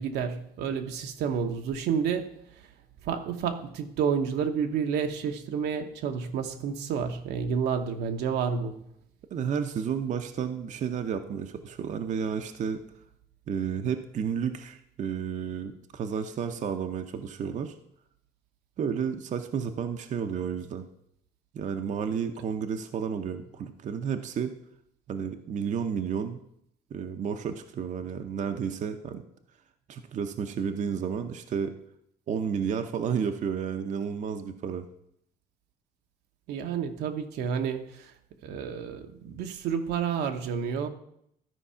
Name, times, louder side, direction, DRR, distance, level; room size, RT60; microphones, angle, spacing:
voice 1, 0.0-2.4 3.1-8.8 36.5-37.8 38.4-40.9, right 7 dB, 80° right, 1.0 m, -30 dB
voice 2, 9.3-12.8 13.5-17.7 18.8-20.9 21.5-24.5 25.1-26.4 26.9-29.2 29.9-31.7 32.3-34.9, right 7 dB, 45° right, 0.7 m, -31 dB
13.0 x 4.6 x 5.6 m
cardioid pair, 110°, 17 cm